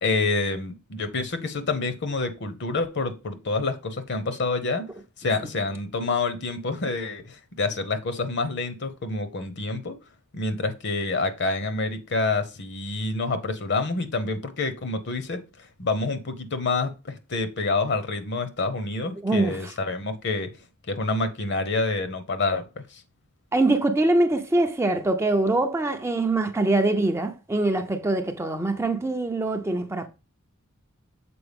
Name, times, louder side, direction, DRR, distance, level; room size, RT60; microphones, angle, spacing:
voice 1, 0.0-4.9 5.2-9.9 10.3-20.5 20.9-23.0, left 3 dB, 55° left, 0.8 m, -27 dB
voice 2, 19.2-19.6 23.5-30.1, right 2 dB, 15° right, 0.4 m, -23 dB
6.9 x 4.4 x 3.5 m
head